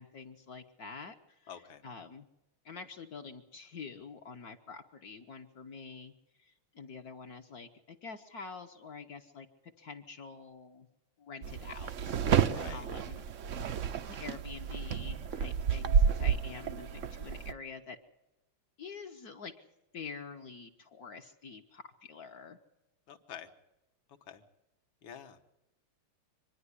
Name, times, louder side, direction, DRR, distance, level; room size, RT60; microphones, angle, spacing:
voice 1, 0.0-2.3 2.6-6.1 6.4-10.9 11.2-13.2 14.1-18.0 18.8-19.5 19.9-22.6, left 5 dB, 55° left, 5 dB, 1.3 m, -47 dB
voice 2, 1.5-1.8 12.5-12.9 23.1-23.5 24.3-24.4 25.0-25.4, left 8 dB, 70° left, 7 dB, 2.0 m, -47 dB
sound 1, 11.4-17.5, right 7 dB, 70° right, 0.7 m, -31 dB
25.5 x 10.5 x 9.8 m, 0.98 s
omnidirectional pair, 2.4 m